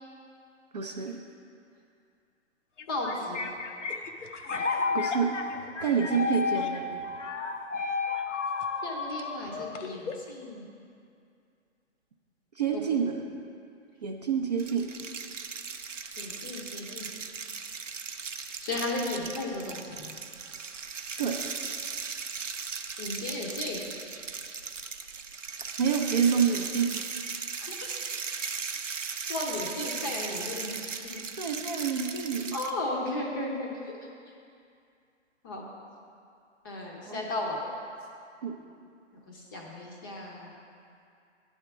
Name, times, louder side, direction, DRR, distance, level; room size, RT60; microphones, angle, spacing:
voice 1, 0.7-1.2 4.9-5.4 5.8-6.8 12.6-13.2 14.0-14.8 21.2-21.4 25.8-27.0 31.4-32.5 37.1-37.2 38.4-38.5, right 6 dB, 35° right, 2 dB, 0.5 m, -27 dB
sound 1, 2.8-10.3, left 4 dB, 75° left, 0.7 m, -32 dB
voice 2, 2.9-3.4 8.8-10.7 12.7-12.8 16.2-17.2 18.6-20.2 23.0-23.8 27.6-27.7 29.3-31.3 31.6-31.7 32.5-34.0 35.4-35.6 36.6-37.6 39.3-40.5, left 2 dB, 20° left, -1 dB, 0.6 m, -35 dB
sound 2, 14.6-32.7, right 5 dB, 85° right, 0.6 m, -37 dB
9.5 x 3.6 x 6.8 m, 2.4 s
figure-of-eight pair, 130°, 36 cm